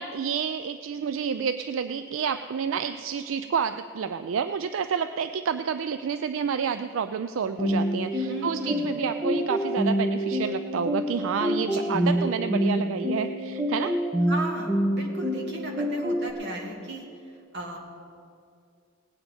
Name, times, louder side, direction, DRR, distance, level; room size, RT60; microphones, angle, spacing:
voice 1, 0.0-14.0, right 6 dB, 80° right, 10 dB, 0.4 m, -29 dB
sound 1, 7.6-16.3, equal, 10° right, 1.1 m, -27 dB
voice 2, 8.2-8.9 11.7-12.2 14.3-14.7 14.9-17.0 17.5-17.8, right 1 dB, 60° right, 0 dB, 2.2 m, -35 dB
19.0 x 8.8 x 5.3 m, 2.4 s
head